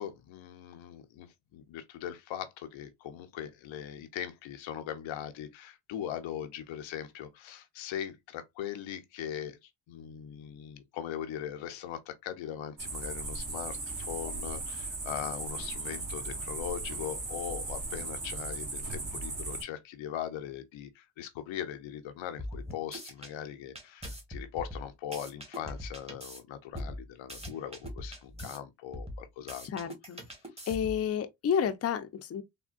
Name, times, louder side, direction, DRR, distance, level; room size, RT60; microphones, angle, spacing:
voice 1, 0.0-29.7, left 10 dB, 90° left, 0.7 m, -40 dB
sound 1, 12.8-19.6, right 3 dB, 45° right, 1.4 m, -37 dB
sound 2, 22.4-23.3 23.7-26.4 26.7-28.6 28.9-31.1, equal, 15° right, 1.2 m, -41 dB
voice 2, 29.6-30.2 30.7-32.4, left 8 dB, 35° left, 0.5 m, -30 dB
3.5 x 2.2 x 2.4 m
cardioid pair, 75°, 45 cm